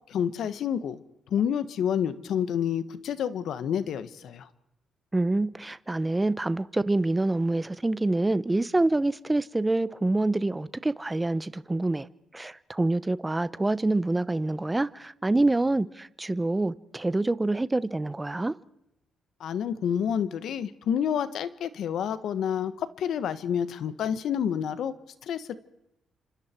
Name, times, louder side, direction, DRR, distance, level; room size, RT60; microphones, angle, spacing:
voice 1, 0.1-1.0 1.3-4.5 19.4-24.9 25.3-25.5, left 8 dB, 70° left, 1.5 m, -29 dB
voice 2, 5.1-12.1 12.3-18.5, right 2 dB, 15° right, 0.8 m, -26 dB
29.5 x 26.5 x 4.6 m
cardioid pair, 90°, 0 cm